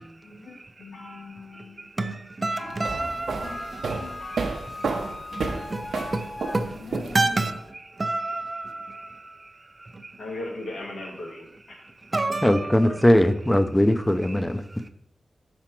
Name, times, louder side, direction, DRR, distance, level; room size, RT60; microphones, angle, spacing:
voice 1, 0.0-1.9 2.6-3.7 4.0-4.7 5.5-5.7 5.9-7.5 10.2-11.8, left 2 dB, 90° left, 1.7 m, -40 dB
voice 2, 1.5-4.5 4.7-6.2 6.5-9.5 9.8-10.2 12.1-12.8, right 2 dB, 35° right, 0.6 m, -30 dB
Wind instrument woodwind instrument, 2.5-6.6, left 2 dB, 60° left, 1.3 m, -40 dB
sound 1, 2.7-7.5, right 4 dB, 85° right, 0.7 m, -31 dB
voice 3, 12.4-14.6, left 1 dB, 15° left, 0.5 m, -20 dB
5.0 x 4.4 x 5.9 m
cardioid pair, 65°, 0 cm